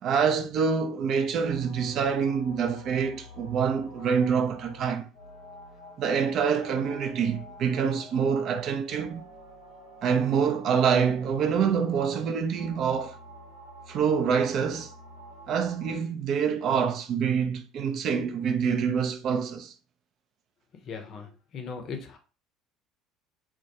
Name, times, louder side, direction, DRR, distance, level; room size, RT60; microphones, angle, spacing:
voice 1, 0.0-5.1 6.0-9.2 10.0-13.2 13.9-14.9 15.5-19.7, right 6 dB, 50° right, 0.4 m, -26 dB
sound 1, 1.4-16.0, left 1 dB, 85° left, 0.8 m, -48 dB
voice 2, 20.8-22.2, left 5 dB, 45° left, 0.6 m, -38 dB
2.2 x 2.2 x 2.7 m
figure-of-eight pair, 60°, 0 cm